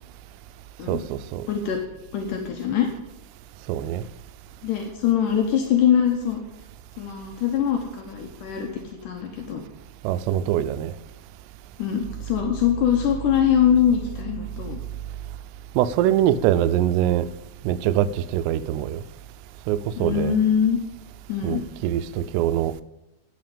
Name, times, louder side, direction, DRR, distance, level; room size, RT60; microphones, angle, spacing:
voice 1, 0.9-1.4 3.7-4.0 10.0-10.9 15.8-17.3 17.7-19.0 19.7-20.4 21.4-22.7, right 11 dB, 85° right, 2.5 m, -23 dB
voice 2, 1.5-1.8 2.1-2.9 4.6-6.4 7.0-8.7 9.0-9.6 11.8-14.8 20.0-20.8 21.3-21.6, left 9 dB, 85° left, 1.8 m, -22 dB
12.5 x 5.0 x 8.9 m
omnidirectional pair, 5.2 m